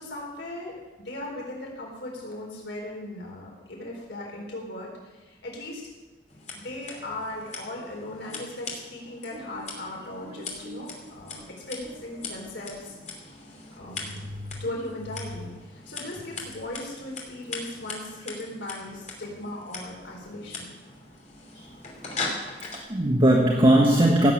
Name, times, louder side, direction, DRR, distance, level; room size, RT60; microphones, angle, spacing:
voice 1, 0.0-5.9 6.5-13.4 13.8-14.2 14.6-20.7, left 1 dB, 80° left, -2 dB, 4.2 m, -38 dB
Scissors, 6.3-22.8, left 3 dB, 40° left, 3.0 m, -40 dB
voice 2, 10.4-10.8 11.4-11.5 14.2-14.6 21.5-21.6 22.7-24.3, right 1 dB, 30° right, 0 dB, 1.4 m, -21 dB
16.5 x 7.8 x 9.0 m, 1.2 s
head